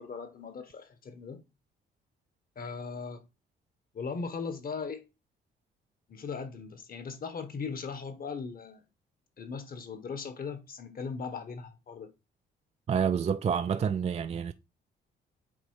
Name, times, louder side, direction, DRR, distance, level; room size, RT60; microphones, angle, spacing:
voice 1, 0.0-1.4 2.5-3.2 3.9-5.0 6.1-8.8 9.4-12.1, left 5 dB, 45° left, 1.5 m, -38 dB
voice 2, 12.9-14.5, right 7 dB, 35° right, 0.4 m, -28 dB
8.2 x 3.1 x 4.8 m
cardioid pair, 90°, 20 cm